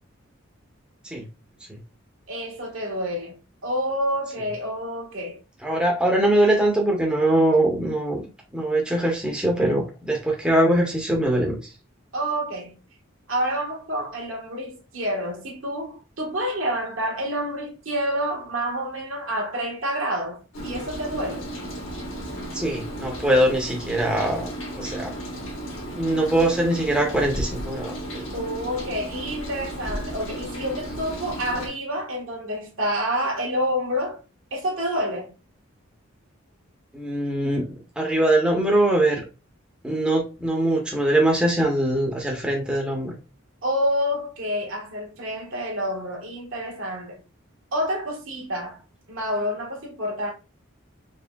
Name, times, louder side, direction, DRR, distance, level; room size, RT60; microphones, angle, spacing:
voice 1, 2.3-5.4 12.1-12.8 13.3-21.5 28.3-34.2 34.5-35.3 43.6-47.2 47.7-48.8 49.1-50.3, equal, 75° right, 1.4 m, -28 dB
voice 2, 5.6-8.2 8.5-11.6 22.5-25.1 25.9-28.2 36.9-37.6 38.0-39.2 39.8-43.2, right 1 dB, 5° right, 0.8 m, -22 dB
Rain, 20.5-31.7, right 1 dB, 75° left, 1.6 m, -34 dB
4.4 x 3.2 x 2.2 m
head